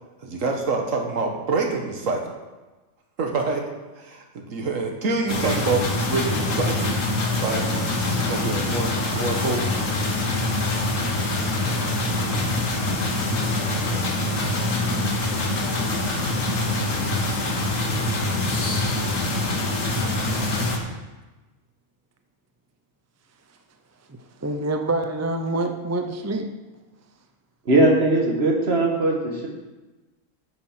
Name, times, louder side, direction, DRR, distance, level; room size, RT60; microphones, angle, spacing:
voice 1, 0.2-2.2 3.2-3.6 4.0-7.0 7.4-7.7 7.9-9.6, right 3 dB, 80° right, 2 dB, 1.6 m, -26 dB
sound 1, 5.3-20.8, left 2 dB, 75° left, 1.7 m, -24 dB
voice 2, 24.1-26.5, right 2 dB, 15° right, 5 dB, 0.6 m, -27 dB
voice 3, 27.7-29.5, right 2 dB, 50° right, 0 dB, 2.0 m, -19 dB
9.3 x 6.9 x 5.9 m, 1.2 s
omnidirectional pair, 1.4 m